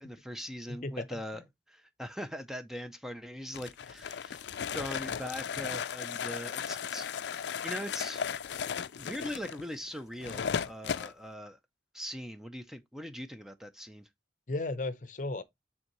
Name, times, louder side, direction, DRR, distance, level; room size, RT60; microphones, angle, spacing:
voice 1, 0.0-4.5 4.7-8.3 9.0-11.6 11.9-14.0, equal, 5° right, 0.5 m, -41 dB
voice 2, 0.7-1.4 14.5-15.4, left 2 dB, 45° left, 0.6 m, -35 dB
sound 1, 3.5-11.1, left 7 dB, 85° left, 0.4 m, -36 dB
9.1 x 3.5 x 3.0 m
head